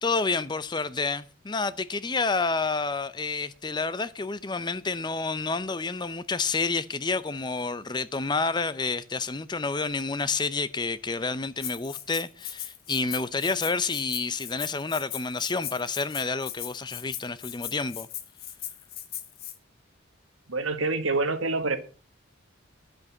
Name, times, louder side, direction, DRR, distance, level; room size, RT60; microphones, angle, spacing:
voice 1, 0.0-18.1, left 4 dB, 20° left, 0.5 m, -29 dB
Rattle (instrument), 11.6-19.5, left 11 dB, 45° left, 1.5 m, -38 dB
voice 2, 20.5-21.8, right 3 dB, 80° right, 1.6 m, -26 dB
11.0 x 7.9 x 7.1 m
head